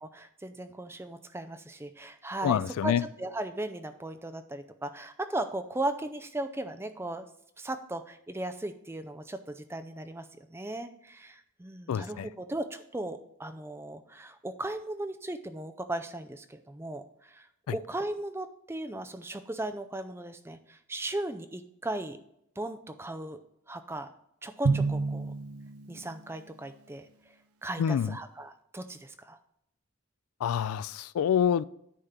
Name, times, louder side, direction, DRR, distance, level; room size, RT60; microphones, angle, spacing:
voice 1, 0.0-2.9 3.2-7.3 7.6-22.2 22.6-23.4 23.7-24.1 24.4-25.3 25.9-27.1 27.6-29.4, right 1 dB, 10° right, 0.4 m, -37 dB
voice 2, 2.4-3.0 11.9-12.3 27.8-28.2 30.4-31.6, left 8 dB, 80° left, 0.3 m, -27 dB
Drum, 24.6-26.4, right 4 dB, 85° right, 0.7 m, -29 dB
9.9 x 3.7 x 5.6 m
head